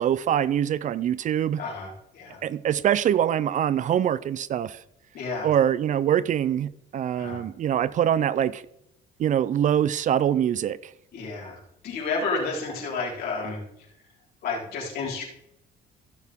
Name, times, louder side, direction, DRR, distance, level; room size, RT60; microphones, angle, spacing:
voice 1, 0.0-1.6 2.4-4.8 5.4-8.6 9.2-10.9, right 10 dB, 50° right, 0.5 m, -24 dB
voice 2, 1.6-2.4 5.1-5.5 7.1-7.4 11.1-13.6 14.4-15.2, left 4 dB, 65° left, 4.0 m, -31 dB
15.5 x 6.5 x 3.6 m
cardioid pair, 110°, 17 cm